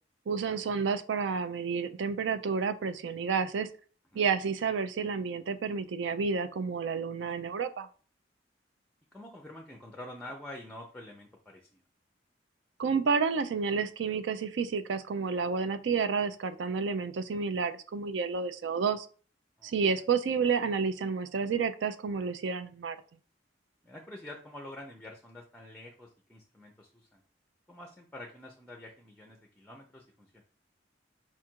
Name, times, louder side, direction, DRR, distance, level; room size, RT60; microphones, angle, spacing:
voice 1, 0.3-3.7 4.1-7.9 12.8-19.1 19.6-23.0, right 5 dB, 75° right, 11 dB, 0.4 m, -30 dB
voice 2, 9.1-11.8 19.6-19.7 23.8-27.2 27.7-30.4, left 1 dB, 5° left, 2 dB, 0.5 m, -47 dB
4.6 x 2.4 x 4.4 m, 0.39 s
head